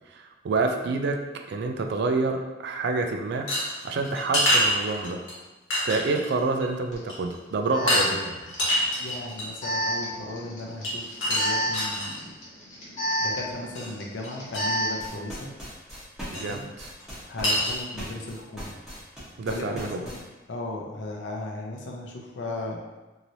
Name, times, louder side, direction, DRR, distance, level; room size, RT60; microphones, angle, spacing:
voice 1, 0.1-3.5 3.8-5.2 5.8-8.4 16.3-16.9 19.4-20.0, right 3 dB, 60° right, 5 dB, 0.3 m, -28 dB
sound 1, 3.5-5.3 5.7-6.3 6.6-6.7 7.1-7.3 7.9-8.1 8.5-9.6 10.8-12.2 13.7-13.9 14.2-14.3 14.5-14.6 16.3-16.5 17.0-17.1 17.4-17.8, left 1 dB, 90° left, 1.1 m, -25 dB
Alarm, 6.9-7.0 7.7-15.1, equal, 40° left, 0.9 m, -32 dB
voice 2, 7.7-8.0 9.0-12.3 13.2-15.5 16.3-16.7 17.3-18.7 19.5-20.2 20.5-22.8, left 2 dB, 70° left, -1 dB, 0.5 m, -36 dB
sound 2, 14.8-20.2, equal, 5° right, 0.9 m, -40 dB
3.0 x 2.8 x 2.6 m, 1.1 s
head